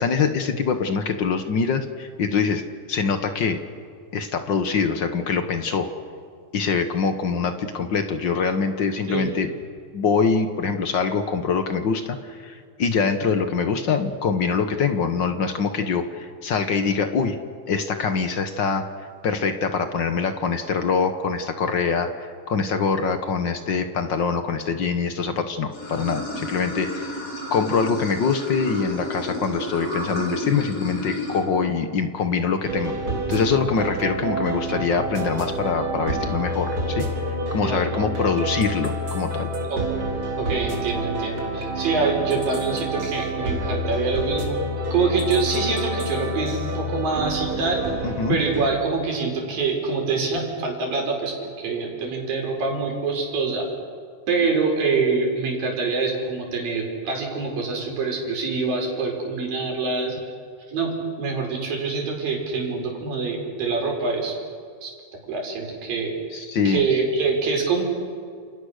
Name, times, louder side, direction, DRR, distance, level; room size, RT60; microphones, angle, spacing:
voice 1, 0.0-2.6 2.9-3.6 4.1-5.9 6.5-9.5 9.9-17.4 17.7-18.8 19.2-27.1 27.5-32.9 33.3-37.1 37.5-39.5 48.0-48.4 66.3-66.8, left 5 dB, 65° left, 8 dB, 1.1 m, -24 dB
Water / Sink (filling or washing), 25.7-31.4, equal, 40° left, 7.5 m, -31 dB
sound 1, 32.6-48.7, right 1 dB, 40° right, 4.5 m, -28 dB
voice 2, 40.4-44.6 44.9-47.8 48.3-53.7 54.3-60.1 60.7-60.9 61.2-64.3 64.8-64.9 65.3-66.1 66.6-67.8, right 4 dB, 90° right, 1 dB, 6.5 m, -25 dB
29.5 x 28.5 x 6.6 m, 2.2 s
omnidirectional pair, 3.9 m